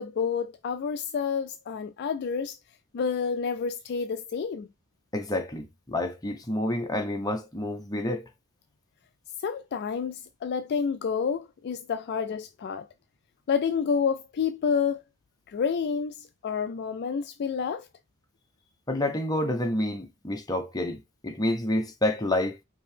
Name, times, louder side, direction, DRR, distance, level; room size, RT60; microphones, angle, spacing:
voice 1, 0.0-2.6 2.9-4.7 9.4-12.9 13.5-15.0 15.5-17.9, left 6 dB, 50° left, 0.3 m, -29 dB
voice 2, 5.1-8.3 18.9-22.6, left 1 dB, 15° left, 0.9 m, -29 dB
5.1 x 2.8 x 3.3 m
head